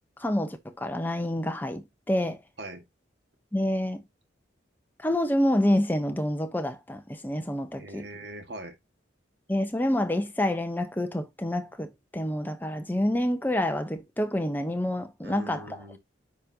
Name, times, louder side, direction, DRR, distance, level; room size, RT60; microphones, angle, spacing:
voice 1, 0.2-2.4 3.5-4.0 5.0-8.1 9.5-15.8, left 1 dB, 10° left, 0.8 m, -28 dB
voice 2, 7.8-8.8 15.2-16.0, right 1 dB, 60° right, 1.8 m, -41 dB
9.4 x 5.3 x 2.8 m
head